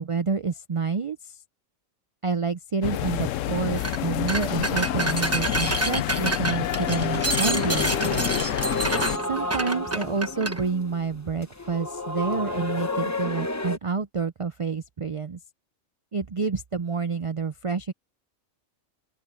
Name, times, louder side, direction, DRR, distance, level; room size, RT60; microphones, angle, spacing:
voice 1, 0.0-1.4 2.2-8.3 9.3-15.4 16.1-17.9, right 5 dB, 55° right, 0.3 m, -28 dB
sound 1, 2.8-9.2, left 12 dB, 75° left, 1.0 m, -28 dB
sound 2, 3.8-4.0 4.3-10.6, right 2 dB, 10° right, 1.0 m, -28 dB
sound 3, 4.5-13.8, left 2 dB, 15° left, 0.8 m, -33 dB
open air
omnidirectional pair, 1.4 m